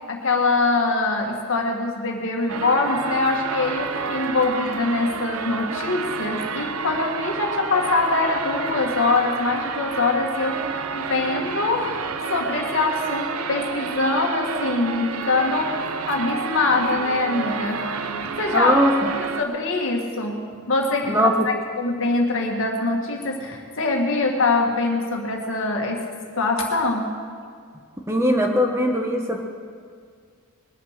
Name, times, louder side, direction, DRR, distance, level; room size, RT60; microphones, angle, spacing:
voice 1, 0.1-18.0 18.4-18.7 19.2-21.2 21.4-26.1 26.4-27.2, left 3 dB, 60° left, 1 dB, 2.0 m, -23 dB
sound 1, 2.5-19.4, right 5 dB, 75° right, 0.8 m, -30 dB
voice 2, 18.5-19.1 21.1-21.5 28.1-29.4, equal, 10° right, 2 dB, 1.2 m, -20 dB
20.5 x 9.2 x 6.7 m, 2.1 s
head